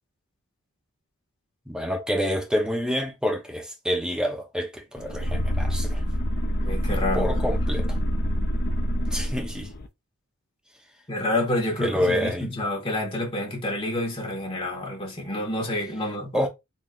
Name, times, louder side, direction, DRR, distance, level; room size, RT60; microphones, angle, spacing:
voice 1, 1.7-6.0 7.1-8.0 9.1-9.7 11.8-12.6 16.3-16.5, equal, 5° right, 0.9 m, -27 dB
sound 1, 5.0-9.9, equal, 45° left, 0.5 m, -26 dB
voice 2, 6.6-7.3 11.1-16.3, left 1 dB, 25° left, 1.8 m, -28 dB
4.1 x 3.4 x 2.5 m
head